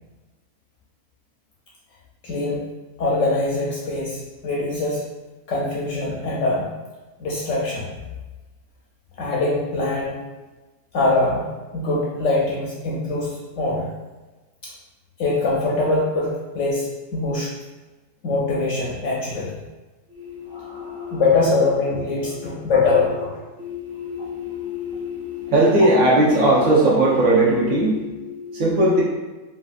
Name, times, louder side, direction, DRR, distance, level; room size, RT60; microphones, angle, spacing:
voice 1, 2.2-2.6 3.0-5.0 5.5-6.7 7.2-7.9 9.2-10.2 10.9-11.5 11.7-13.9 14.6-14.7 15.2-17.5 18.2-19.5 20.5-23.3, left 3 dB, 70° left, -4 dB, 0.8 m, -23 dB
voice 2, 20.2-21.2 23.6-29.0, right 1 dB, 65° right, -6 dB, 1.1 m, -20 dB
3.2 x 2.4 x 2.4 m, 1.2 s
omnidirectional pair, 1.6 m